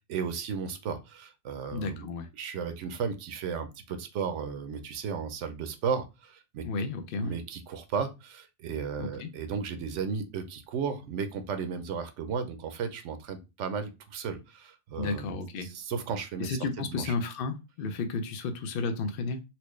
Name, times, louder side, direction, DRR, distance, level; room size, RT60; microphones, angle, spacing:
voice 1, 0.0-6.7 7.2-15.4 15.6-17.1, right 6 dB, 80° right, 1.0 m, -34 dB
voice 2, 1.7-2.3 6.6-7.4 9.0-9.3 15.0-15.7 16.4-19.4, left 4 dB, 60° left, 0.6 m, -32 dB
4.3 x 2.0 x 3.1 m
omnidirectional pair, 1.2 m